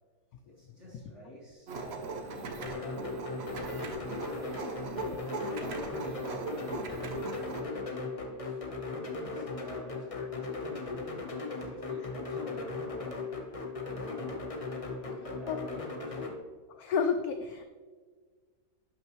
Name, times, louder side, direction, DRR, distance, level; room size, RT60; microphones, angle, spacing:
voice 1, 0.4-3.1 3.7-10.5 11.4-13.1 13.8-14.4 15.0-16.4, equal, 15° left, -9 dB, 2.4 m, -51 dB
sound 1, 1.7-7.6, right 3 dB, 65° right, 0.6 m, -39 dB
sound 2, 2.6-16.3, left 3 dB, 45° left, 0.4 m, -38 dB
voice 2, 16.8-17.6, left 6 dB, 85° left, 7 dB, 0.8 m, -30 dB
11.5 x 5.7 x 3.1 m, 1.5 s
omnidirectional pair, 2.1 m